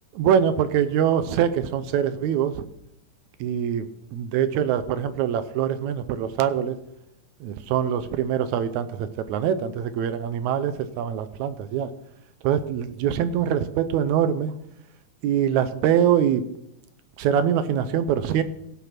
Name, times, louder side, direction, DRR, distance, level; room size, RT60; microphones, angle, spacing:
voice 1, 0.2-2.6 3.4-6.8 7.4-11.9 12.4-14.5 15.2-16.4 17.2-18.4, right 9 dB, 75° right, 12 dB, 1.9 m, -24 dB
16.5 x 5.7 x 6.0 m, 0.78 s
omnidirectional pair, 3.6 m